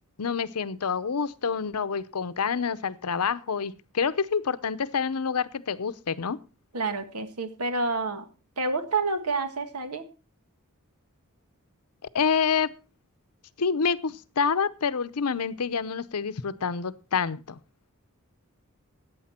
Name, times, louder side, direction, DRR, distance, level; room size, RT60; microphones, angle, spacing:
voice 1, 0.2-6.4 12.1-12.7 13.6-17.6, left 6 dB, 85° left, 16 dB, 0.7 m, -27 dB
voice 2, 6.7-8.3 8.6-10.1, right 3 dB, 85° right, 9 dB, 1.8 m, -28 dB
14.5 x 9.1 x 4.3 m, 0.32 s
head